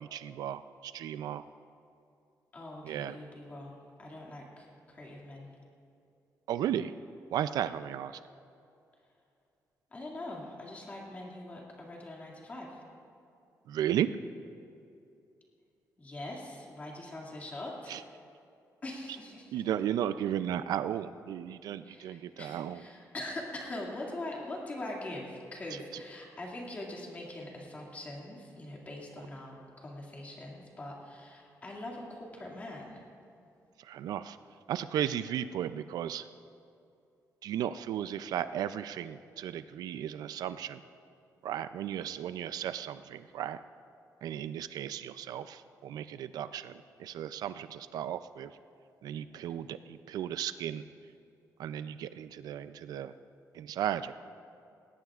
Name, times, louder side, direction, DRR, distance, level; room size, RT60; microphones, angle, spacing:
voice 1, 0.0-1.4 2.8-3.1 6.5-6.9 7.3-8.2 13.7-14.1 17.9-18.0 19.5-22.8 33.9-34.4 34.7-36.2 37.4-40.8 41.4-43.6 44.2-46.7 47.0-48.5 49.0-50.8 51.6-53.1 53.5-54.1, right 10 dB, 85° right, 13 dB, 0.4 m, -35 dB
voice 2, 2.5-5.5 9.9-12.8 16.0-18.0 18.8-19.6 21.8-33.0, left 1 dB, 25° left, -2 dB, 2.3 m, -43 dB
19.5 x 17.0 x 2.4 m, 2.6 s
wide cardioid pair, 170°, 7 cm